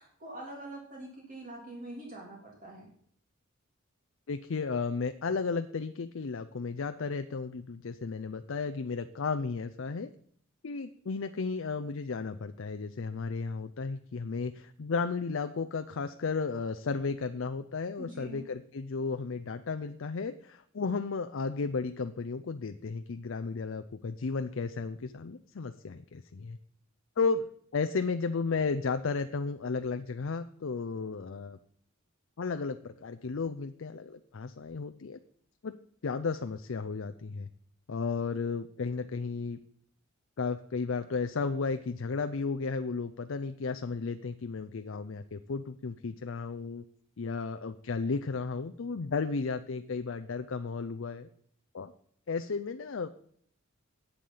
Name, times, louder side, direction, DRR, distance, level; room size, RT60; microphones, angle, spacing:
voice 1, 0.0-2.9 18.0-18.4, right 1 dB, 40° right, -3 dB, 3.1 m, -44 dB
voice 2, 4.3-10.1 10.6-26.6 27.2-27.5 27.7-31.6 32.4-35.2 35.6-35.7 36.0-37.5 37.9-39.6 40.4-46.8 47.2-51.3 51.7-51.9 52.3-53.1, left 4 dB, 65° left, 9 dB, 0.5 m, -34 dB
10.5 x 8.5 x 5.6 m, 0.62 s
head